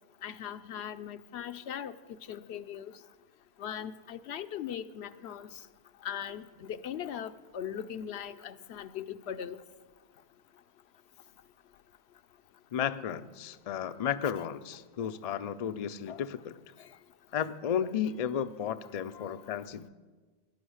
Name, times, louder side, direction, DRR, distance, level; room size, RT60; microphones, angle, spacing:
voice 1, 0.2-1.9 2.3-2.9 3.6-5.6 6.0-9.6 14.2-14.3 16.1-16.3 16.8-16.9 19.1-19.3, left 9 dB, 80° left, 11 dB, 0.9 m, -39 dB
voice 2, 12.7-16.5 17.3-19.9, left 9 dB, 50° left, 11 dB, 0.5 m, -33 dB
13.5 x 10.5 x 6.4 m, 1.3 s
omnidirectional pair, 1.1 m